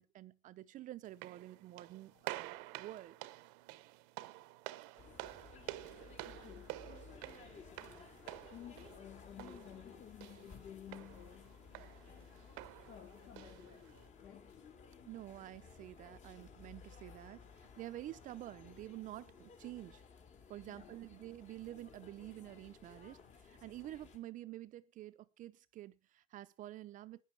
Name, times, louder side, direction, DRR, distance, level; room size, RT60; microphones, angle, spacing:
voice 1, 0.0-3.2 15.0-20.0 20.5-27.2, right 14 dB, 45° right, 0.6 m, -49 dB
sound 1, 1.0-14.1, right 18 dB, 85° right, 0.9 m, -50 dB
sound 2, 5.0-24.2, left 5 dB, 40° left, 2.8 m, -57 dB
voice 2, 6.2-6.9 8.5-11.7 12.9-14.6 20.6-21.0, left 10 dB, 55° left, 1.3 m, -54 dB
13.0 x 10.0 x 5.6 m
cardioid pair, 135°, 18 cm